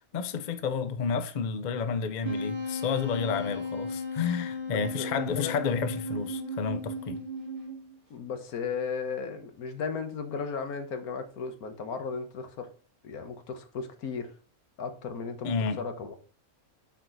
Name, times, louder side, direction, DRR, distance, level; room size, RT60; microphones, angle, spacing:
voice 1, 0.1-7.2 15.4-15.8, left 6 dB, 50° left, 0.5 m, -30 dB
Wind instrument woodwind instrument, 2.2-7.9, left 1 dB, 20° right, 2.1 m, -35 dB
voice 2, 4.7-5.6 8.1-12.7 13.0-14.3 14.8-16.2, left 5 dB, 85° left, 1.6 m, -35 dB
7.8 x 4.5 x 3.9 m
omnidirectional pair, 1.5 m